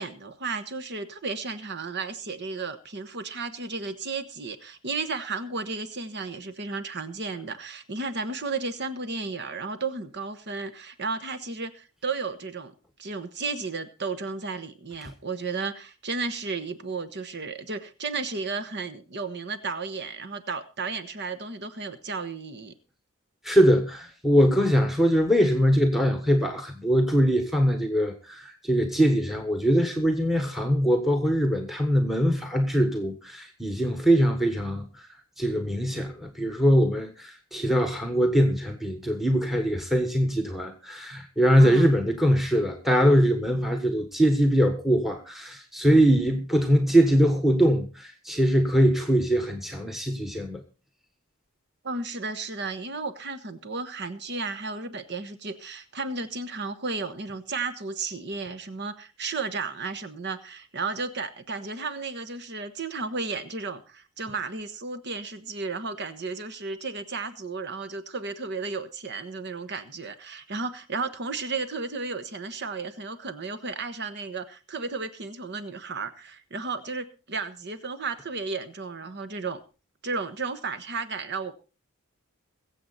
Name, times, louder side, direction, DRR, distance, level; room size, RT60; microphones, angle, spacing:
voice 1, 0.0-12.7 13.0-22.7 41.6-41.9 51.8-79.6 80.0-81.5, right 4 dB, 50° right, 1.3 m, -33 dB
voice 2, 23.4-34.9 35.4-50.6, equal, ahead, 1.4 m, -22 dB
23.0 x 7.7 x 4.2 m
head